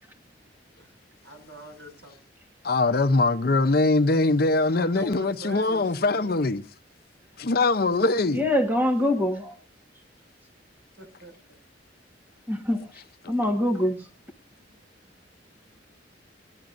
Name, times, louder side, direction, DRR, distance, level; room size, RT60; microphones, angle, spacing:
voice 1, 1.2-2.2 4.7-6.3 11.0-11.6, right 1 dB, 65° right, 6.2 m, -43 dB
voice 2, 2.6-6.6 7.4-8.4, left 2 dB, 55° left, 0.7 m, -22 dB
voice 3, 8.3-9.6 12.5-13.0 13.3-14.1, left 1 dB, 10° right, 1.4 m, -24 dB
20.5 x 11.5 x 2.6 m
head